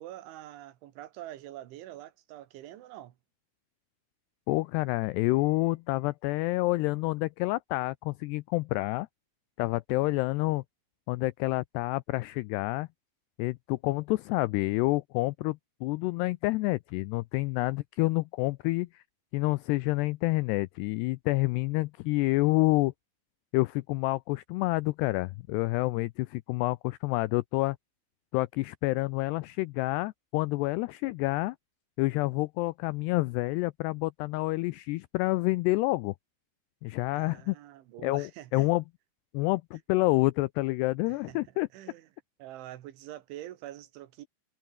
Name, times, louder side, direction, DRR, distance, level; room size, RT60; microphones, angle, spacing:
voice 1, 0.0-3.2 37.1-38.7 41.1-41.4 41.7-42.1 42.4-44.3, right 14 dB, 80° right, 4.0 m, -45 dB
voice 2, 4.5-9.1 9.6-10.6 11.1-12.9 13.4-19.0 19.3-22.9 23.5-27.8 28.3-31.6 32.0-36.1 36.8-37.6 38.0-38.8 39.3-41.7, left 21 dB, 90° left, 2.4 m, -28 dB
omnidirectional pair, 5.4 m